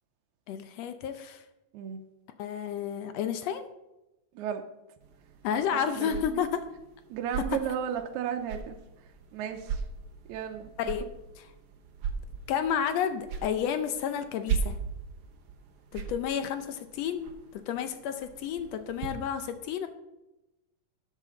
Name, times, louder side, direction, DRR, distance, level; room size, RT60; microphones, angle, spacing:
voice 1, 0.5-1.4 2.4-3.7 5.4-6.6 10.8-11.1 12.5-14.8 15.9-19.9, left 8 dB, 75° left, 9 dB, 1.7 m, -31 dB
sound 1, 5.0-19.1, right 6 dB, 60° right, 1.7 m, -39 dB
voice 2, 5.7-6.4 7.1-8.8 9.3-9.8 10.3-10.9, right 8 dB, 85° right, 4 dB, 2.1 m, -34 dB
12.5 x 8.4 x 3.8 m, 0.97 s
omnidirectional pair, 3.3 m